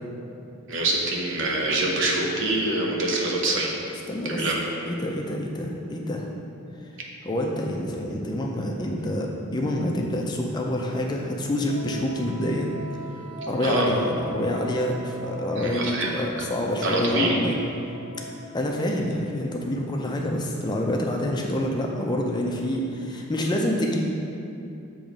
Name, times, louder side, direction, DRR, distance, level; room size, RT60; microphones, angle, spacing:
voice 1, 0.7-3.8 4.2-4.6 13.6-13.9 15.6-16.1 16.8-17.4, right 2 dB, 60° right, -1 dB, 0.9 m, -25 dB
voice 2, 4.1-4.5 4.9-6.3 7.2-12.7 13.5-17.6 18.5-24.0, left 1 dB, 20° left, 0 dB, 0.5 m, -27 dB
Wind instrument woodwind instrument, 11.7-19.0, right 1 dB, 20° right, 0.9 m, -40 dB
7.1 x 3.1 x 5.0 m, 2.6 s
head